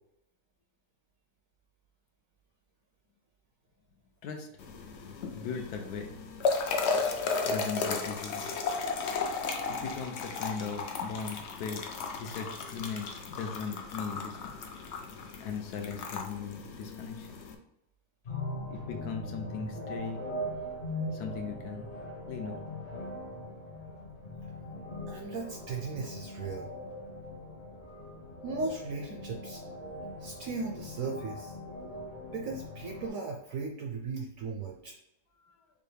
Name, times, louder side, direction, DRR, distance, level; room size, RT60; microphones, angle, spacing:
sound 1, 4.6-17.6, left 4 dB, 90° left, 0.5 m, -35 dB
voice 1, 5.3-6.1 7.4-8.4 9.7-11.9 12.2-14.6 15.4-17.3 18.7-20.2 21.1-21.9 22.3-22.6 35.4-35.5, left 5 dB, 75° left, 4 dB, 1.0 m, -38 dB
sound 2, 18.2-33.1, left 1 dB, 45° left, 1.2 m, -41 dB
voice 2, 25.1-26.7 28.4-29.6 30.2-31.6 32.3-34.9, right 4 dB, 70° right, 1 dB, 0.8 m, -37 dB
5.4 x 2.2 x 3.3 m, 0.86 s
omnidirectional pair, 1.8 m